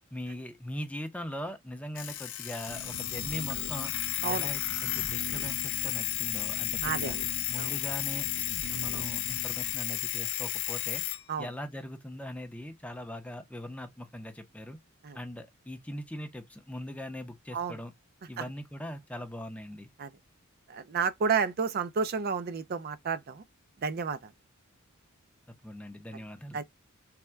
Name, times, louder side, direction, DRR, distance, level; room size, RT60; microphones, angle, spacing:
voice 1, 0.1-3.9 4.2-7.1 7.5-8.3 8.7-11.0 11.4-14.8 15.1-17.9 18.3-19.9 25.6-26.6, left 1 dB, 5° left, 0.5 m, -40 dB
Alarm, 2.0-11.2, left 14 dB, 60° left, 0.5 m, -33 dB
sound 1, 2.7-9.7, right 2 dB, 85° right, 0.6 m, -44 dB
voice 2, 6.8-7.2 7.6-7.7 11.3-11.5 15.0-15.2 17.5-17.8 18.4-18.5 20.0-20.1 20.7-23.4 23.8-24.3 26.5-26.6, right 5 dB, 45° right, 0.4 m, -31 dB
3.5 x 2.1 x 4.3 m
head